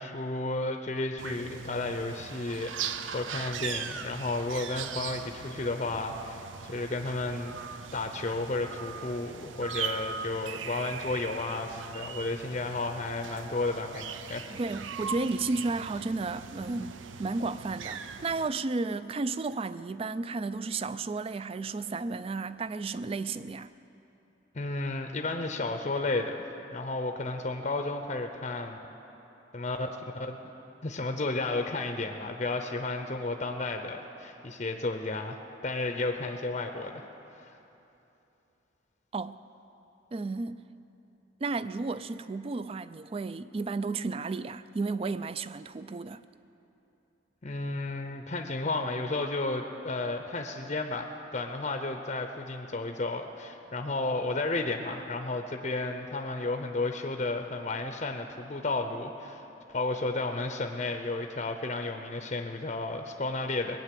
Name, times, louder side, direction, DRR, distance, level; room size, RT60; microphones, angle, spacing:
voice 1, 0.0-7.6 7.9-14.4 24.5-26.3 26.7-28.8 29.5-29.9 30.1-30.4 30.8-37.0 37.3-37.5 47.4-63.8, left 2 dB, 35° left, 0.6 m, -32 dB
sound 1, 1.2-18.5, right 7 dB, 85° right, 0.6 m, -40 dB
voice 2, 14.5-23.7 39.1-39.4 40.1-40.6 41.4-46.2, right 3 dB, 30° right, 0.3 m, -33 dB
19.5 x 9.1 x 7.6 m
head